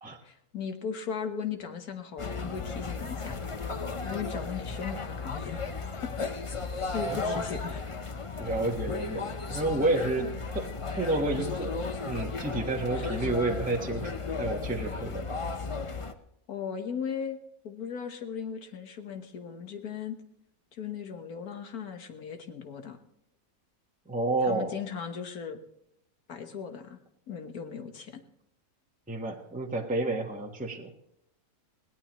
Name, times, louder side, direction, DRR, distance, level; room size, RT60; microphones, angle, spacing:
voice 1, 0.2-3.4 4.0-5.6 6.0-6.1 6.9-7.8 10.2-10.3 13.0-13.4 16.5-17.4 17.6-20.2 20.7-23.0 24.4-25.6 26.3-27.0 27.3-28.2, left 7 dB, 70° left, 7 dB, 1.8 m, -37 dB
sound 1, 2.2-16.1, left 4 dB, 30° left, 0.6 m, -35 dB
voice 2, 7.1-7.4 8.4-10.7 10.9-11.8 12.0-14.1 14.4-15.3 24.1-24.7 29.1-30.9, right 2 dB, 5° right, 1 dB, 1.2 m, -30 dB
21.0 x 17.5 x 3.1 m, 0.80 s
omnidirectional pair, 1.6 m